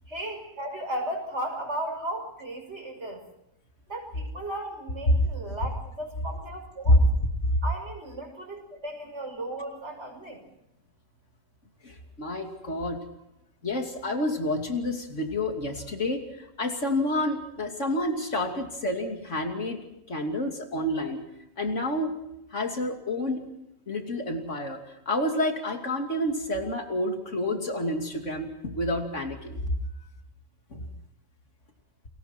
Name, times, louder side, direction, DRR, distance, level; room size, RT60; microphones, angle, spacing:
voice 1, 0.1-3.2 3.9-7.0 7.6-10.4, right 1 dB, 50° right, 4 dB, 6.6 m, -35 dB
voice 2, 11.8-13.0 13.6-19.8 20.1-21.2 21.6-22.1 22.5-23.4 23.9-29.6 30.7-30.8, left 1 dB, 60° left, 3 dB, 3.1 m, -28 dB
30.0 x 22.0 x 4.5 m, 0.86 s
omnidirectional pair, 1.4 m